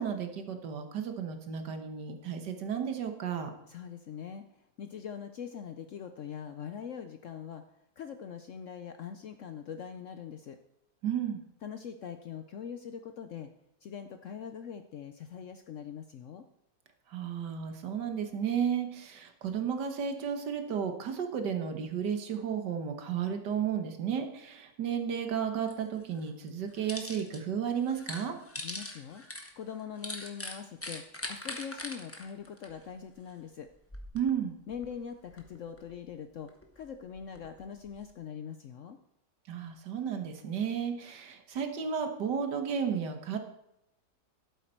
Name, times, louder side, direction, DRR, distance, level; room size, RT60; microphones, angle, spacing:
voice 1, 0.0-3.5 11.0-11.4 17.1-28.4 34.1-34.6 39.5-43.4, right 7 dB, 75° right, 6 dB, 1.8 m, -33 dB
voice 2, 3.7-4.4 4.8-7.6 8.0-10.6 11.6-13.5 13.8-16.4 28.6-29.2 29.6-33.7 34.7-39.0, left 7 dB, 65° left, 8 dB, 0.8 m, -42 dB
sound 1, 25.7-25.8 26.1-27.4 27.7-33.3 33.7-34.3 34.7-36.0 36.5-38.0, left 1 dB, 10° left, 0.9 m, -42 dB
12.0 x 8.2 x 4.5 m, 0.84 s
omnidirectional pair, 1.9 m